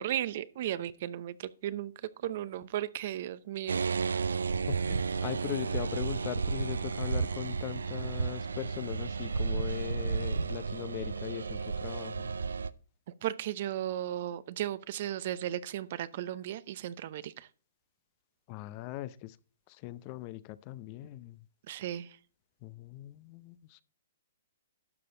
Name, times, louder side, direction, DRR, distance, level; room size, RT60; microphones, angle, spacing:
voice 1, 0.0-1.9 2.2-3.8 13.2-17.5 21.7-22.1, right 12 dB, 55° right, 0.7 m, -35 dB
sound 1, 3.7-12.7, right 5 dB, 90° right, 0.5 m, -32 dB
voice 2, 4.7-12.3 18.5-19.4 19.7-21.4 22.6-23.8, left 16 dB, 40° left, 0.6 m, -40 dB
12.0 x 6.8 x 3.9 m
hypercardioid pair, 135°, 0 cm